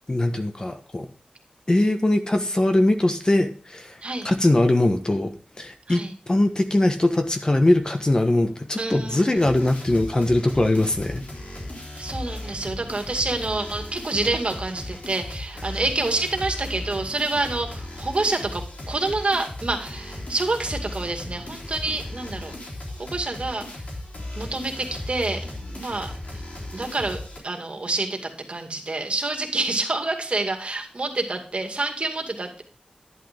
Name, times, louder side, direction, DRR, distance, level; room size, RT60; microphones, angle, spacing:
voice 1, 0.1-1.1 1.7-3.9 4.2-5.3 5.6-11.2, left 1 dB, 30° left, 6 dB, 1.3 m, -21 dB
voice 2, 8.8-9.5 12.0-18.6 18.9-22.5 23.0-23.7 24.4-25.4 25.7-26.1 26.7-27.2 27.4-32.6, right 2 dB, 50° right, 4 dB, 2.1 m, -27 dB
sound 1, 9.3-27.4, left 1 dB, 65° left, 3.9 m, -36 dB
11.0 x 11.0 x 3.6 m, 0.40 s
wide cardioid pair, 85°, 3 cm